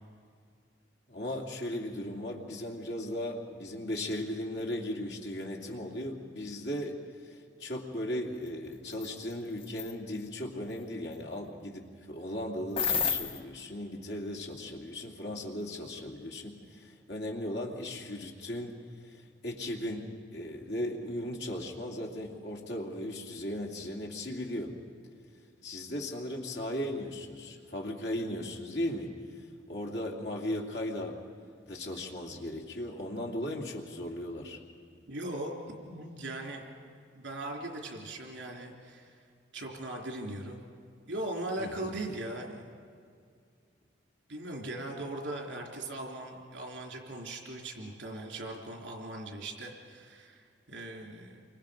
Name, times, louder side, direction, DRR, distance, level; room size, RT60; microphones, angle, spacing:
voice 1, 1.1-18.8 19.0-24.7 25.6-31.2 31.6-34.6 41.6-41.9, left 1 dB, 65° left, -1 dB, 2.5 m, -37 dB
sound 1, 8.9-9.1 9.6-9.9 12.8-13.4, left 6 dB, 30° left, 0.9 m, -29 dB
voice 2, 35.1-35.5 35.8-36.6 37.1-39.1 39.5-40.6 41.1-42.7 44.3-51.5, right 1 dB, 80° right, 1 dB, 3.5 m, -39 dB
28.5 x 24.5 x 5.2 m, 2.2 s
head